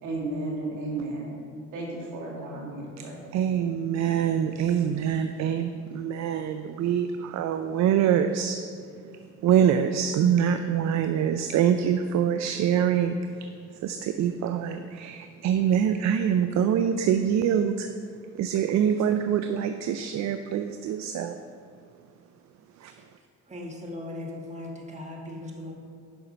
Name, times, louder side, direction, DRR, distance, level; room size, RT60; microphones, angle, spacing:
voice 1, 0.0-1.4 1.7-3.3, right 2 dB, 80° right, -3 dB, 1.9 m, -33 dB
voice 2, 3.3-8.6 9.4-13.5 13.8-17.9 18.4-21.4 22.8-22.9, right 8 dB, 65° right, 8 dB, 0.4 m, -25 dB
voice 3, 23.5-25.7, left 1 dB, 25° right, 0 dB, 1.3 m, -38 dB
6.8 x 5.7 x 5.1 m, 2.2 s
cardioid pair, 90°, 30 cm